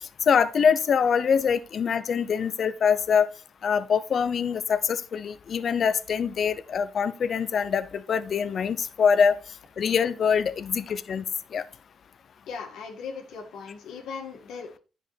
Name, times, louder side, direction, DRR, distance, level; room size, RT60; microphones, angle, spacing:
voice 1, 0.3-3.3 3.6-9.3 9.8-11.2 11.5-11.6, left 6 dB, 55° left, 0.7 m, -24 dB
voice 2, 12.5-14.8, left 5 dB, 90° left, 2.1 m, -38 dB
9.8 x 6.8 x 3.4 m
cardioid pair, 100°, 0 cm